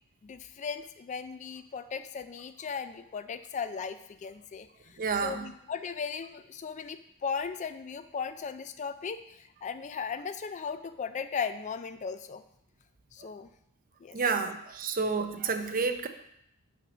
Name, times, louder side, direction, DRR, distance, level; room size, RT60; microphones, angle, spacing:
voice 1, 0.2-4.7 5.2-12.4 13.1-13.5 14.0-14.2, left 6 dB, 35° left, 11 dB, 0.3 m, -37 dB
voice 2, 5.0-5.5 14.1-16.1, right 4 dB, 40° right, 8 dB, 0.6 m, -30 dB
5.9 x 5.4 x 6.0 m, 0.76 s
head